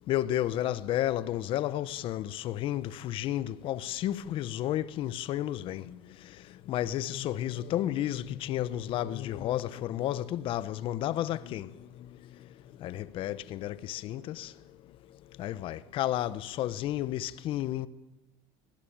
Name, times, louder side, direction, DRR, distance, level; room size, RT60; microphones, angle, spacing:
voice 1, 0.1-6.0 6.7-11.7 12.8-14.5 15.4-17.9, left 13 dB, 50° left, 1.1 m, -32 dB
25.5 x 18.5 x 8.8 m
cardioid pair, 130°, 11 cm